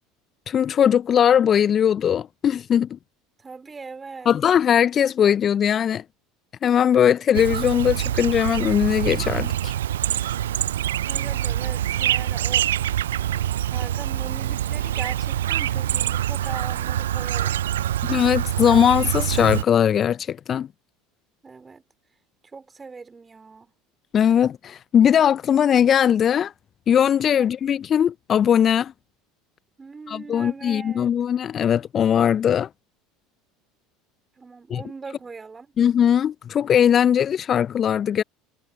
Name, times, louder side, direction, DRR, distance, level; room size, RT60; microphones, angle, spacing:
voice 1, 0.5-3.0 4.3-6.0 6.6-9.7 18.1-20.7 24.1-26.5 26.9-28.9 30.1-32.7 34.7-34.8 35.8-38.2, left 9 dB, 35° left, 0.6 m, -19 dB
voice 2, 3.4-4.3 11.1-12.7 13.6-17.6 18.6-18.7 21.4-21.8 22.5-23.7 27.4-27.5 29.8-31.1 34.4-35.7, right 4 dB, 20° right, 3.5 m, -40 dB
Chirp tweet, 7.3-19.6, right 12 dB, 75° right, 0.5 m, -25 dB
figure-of-eight pair, 70°, 0 cm